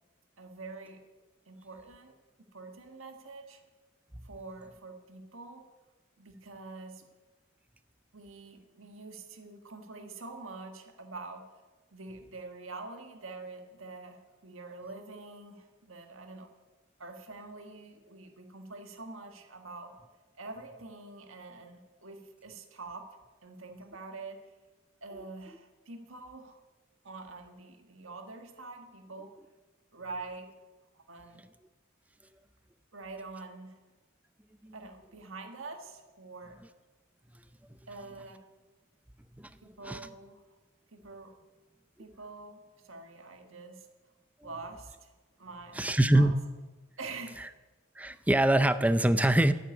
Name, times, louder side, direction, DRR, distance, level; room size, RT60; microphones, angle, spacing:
voice 1, 0.4-1.0 1.5-3.6 4.2-5.7 6.2-7.1 8.1-11.5 11.9-16.5 17.0-20.0 20.3-24.5 25.0-26.6 27.0-29.3 29.9-30.5 30.9-31.4 32.9-33.7 34.7-36.6 37.9-38.5 39.6-40.4 40.9-41.4 42.0-43.9 44.4-45.1 45.4-46.3 47.0-47.4, right 3 dB, 75° right, 5 dB, 1.5 m, -45 dB
voice 2, 45.7-46.3 48.0-49.5, right 1 dB, 5° right, 13 dB, 0.5 m, -23 dB
14.0 x 7.9 x 9.4 m, 1.2 s
head